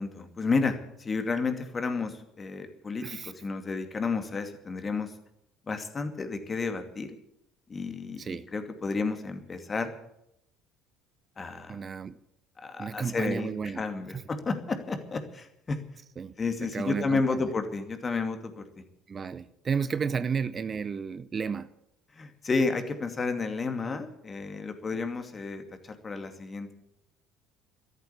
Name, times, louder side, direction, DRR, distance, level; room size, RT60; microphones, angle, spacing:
voice 1, 0.0-5.1 5.7-7.1 7.7-9.9 11.4-11.8 12.6-15.8 16.4-18.8 22.1-26.7, left 4 dB, 30° left, 7 dB, 2.5 m, -31 dB
voice 2, 3.0-3.3 8.2-8.5 11.7-12.2 12.8-13.8 14.1-14.2 16.2-16.3 16.6-17.5 19.1-21.7, right 6 dB, 35° right, 15 dB, 0.7 m, -32 dB
13.5 x 12.0 x 8.4 m, 0.78 s
hypercardioid pair, 60°, 0 cm